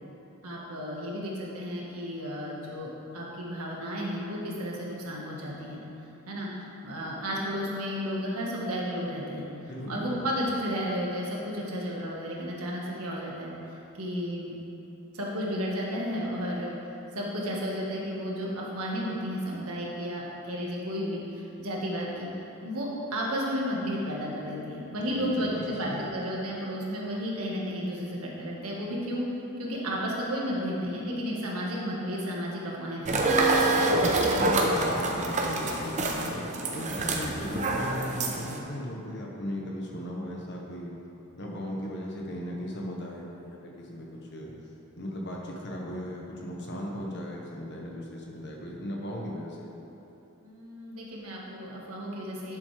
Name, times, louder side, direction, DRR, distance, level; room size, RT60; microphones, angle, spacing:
voice 1, 0.4-5.8 6.3-6.5 6.8-9.5 9.9-13.5 14.0-14.5 15.1-16.7 17.1-21.2 21.6-22.3 22.6-29.3 29.6-33.7 50.4-52.6, equal, 85° right, -3 dB, 1.7 m, -33 dB
voice 2, 9.7-10.3 25.0-26.1 34.3-36.4 36.7-40.9 41.4-44.5 45.0-49.7, equal, 55° left, -2 dB, 1.4 m, -37 dB
sound 1, 33.1-38.6, right 2 dB, 35° right, 0.8 m, -26 dB
11.0 x 7.4 x 3.4 m, 3.0 s
head